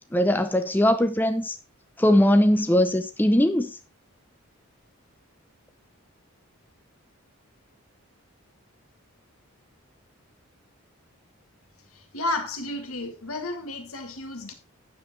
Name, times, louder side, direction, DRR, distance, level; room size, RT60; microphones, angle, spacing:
voice 1, 0.1-1.6 2.0-3.8, left 1 dB, 10° left, 0.5 m, -20 dB
voice 2, 12.1-14.5, left 2 dB, 75° left, 2.2 m, -32 dB
9.5 x 7.6 x 4.3 m
head